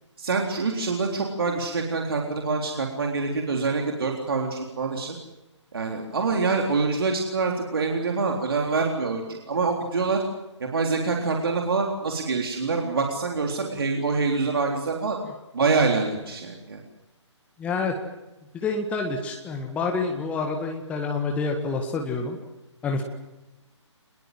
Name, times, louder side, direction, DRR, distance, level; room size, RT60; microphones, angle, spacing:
voice 1, 0.2-5.2 5.7-10.2 10.6-15.2 15.5-16.8, right 4 dB, 50° right, 1 dB, 3.8 m, -25 dB
voice 2, 17.6-17.9 18.5-22.4 22.8-23.0, left 4 dB, 10° left, 2 dB, 1.8 m, -27 dB
27.0 x 21.0 x 7.7 m, 1.0 s
figure-of-eight pair, 140°, 16 cm